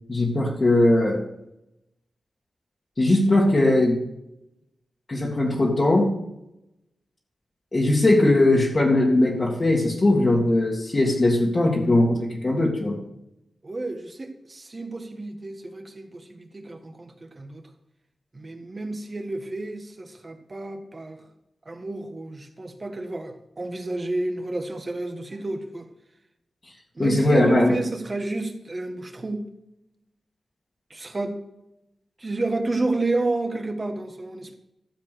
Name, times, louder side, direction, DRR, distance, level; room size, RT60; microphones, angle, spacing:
voice 1, 0.1-1.2 3.0-4.0 5.1-6.1 7.7-13.0 27.0-27.7, left 2 dB, 35° left, -3 dB, 2.2 m, -20 dB
voice 2, 13.6-17.6 18.3-21.2 21.7-25.9 27.0-29.5 30.9-31.4 32.2-34.5, right 2 dB, 30° right, 5 dB, 1.8 m, -30 dB
13.5 x 7.3 x 6.6 m, 0.87 s
wide cardioid pair, 110°, 0 cm